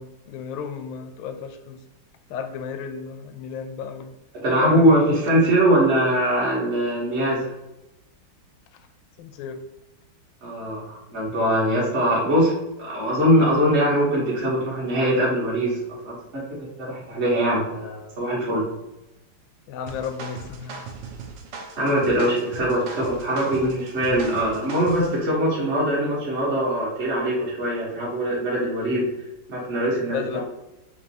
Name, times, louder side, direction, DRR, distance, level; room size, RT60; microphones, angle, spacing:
voice 1, 0.0-1.8 2.3-4.1 4.6-5.1 9.2-9.6 19.7-20.8 30.1-30.4, left 7 dB, 80° left, 7 dB, 1.4 m, -33 dB
voice 2, 4.3-7.5 10.4-16.4 16.8-18.6 21.8-29.1 29.5-30.2, equal, 40° right, -7 dB, 1.4 m, -22 dB
sound 1, 19.9-25.2, right 5 dB, 70° right, 1.3 m, -38 dB
5.3 x 2.9 x 2.8 m, 0.93 s
omnidirectional pair, 2.2 m